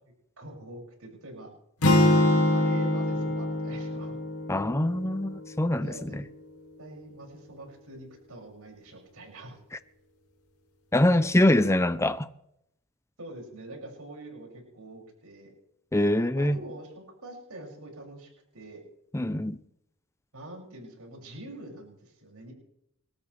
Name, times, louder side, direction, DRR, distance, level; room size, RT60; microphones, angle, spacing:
voice 1, 0.4-1.5 2.1-4.2 5.8-6.2 6.8-9.6 13.2-15.5 16.3-16.9 17.2-18.8 20.3-22.5, right 1 dB, 80° right, 6.7 m, -44 dB
sound 1, 1.8-6.0, left 1 dB, 85° left, 2.7 m, -25 dB
voice 2, 4.5-6.2 10.9-12.3 15.9-16.6 19.1-19.6, left 1 dB, 10° left, 0.6 m, -24 dB
29.5 x 13.5 x 3.4 m
head